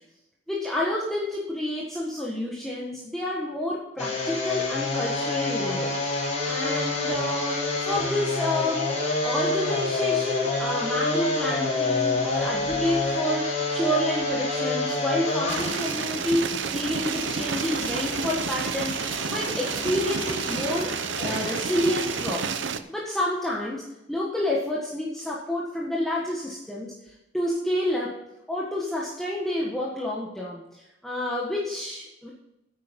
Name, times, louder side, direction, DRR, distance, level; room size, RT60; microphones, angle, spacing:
voice 1, 0.5-8.9 9.2-22.6 22.9-28.2 28.5-32.3, left 1 dB, ahead, -5 dB, 1.6 m, -29 dB
sound 1, 4.0-22.3, left 3 dB, 40° left, 4.2 m, -29 dB
sound 2, 15.5-22.8, right 6 dB, 75° right, 0.8 m, -30 dB
10.5 x 8.9 x 5.3 m, 0.93 s
head